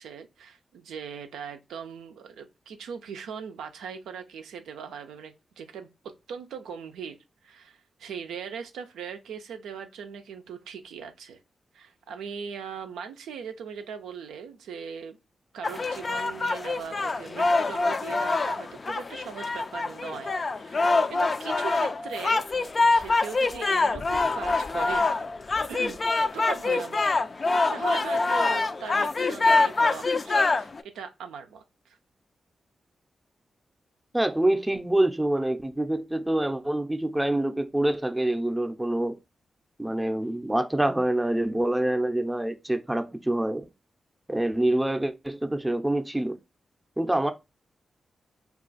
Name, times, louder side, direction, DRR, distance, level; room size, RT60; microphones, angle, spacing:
voice 1, 0.0-7.2 7.4-11.4 11.7-15.2 15.5-22.4 22.9-25.1 25.7-27.0 27.3-32.0, right 6 dB, 90° right, 0.4 m, -39 dB
sound 1, 15.6-30.8, left 3 dB, 50° left, 0.3 m, -25 dB
voice 2, 34.1-39.2 39.8-43.7 44.3-46.4 47.0-47.3, right 1 dB, 10° right, 0.5 m, -26 dB
2.4 x 2.3 x 3.8 m
supercardioid pair, 45°, 0 cm